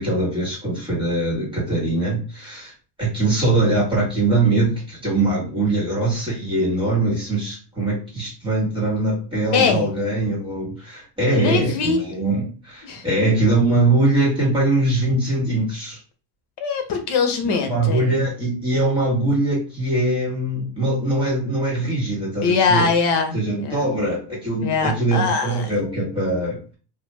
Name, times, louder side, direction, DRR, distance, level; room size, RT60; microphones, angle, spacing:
voice 1, 0.0-2.7 3.0-16.0 17.4-22.9 23.3-26.8, right 2 dB, 10° right, -7 dB, 1.4 m, -22 dB
voice 2, 9.5-9.9 11.3-12.0 12.8-13.0 16.6-18.0 22.4-23.9 24.6-25.7, left 5 dB, 70° left, 6 dB, 0.9 m, -22 dB
2.5 x 2.4 x 3.2 m, 0.36 s
cardioid pair, 155°, 42 cm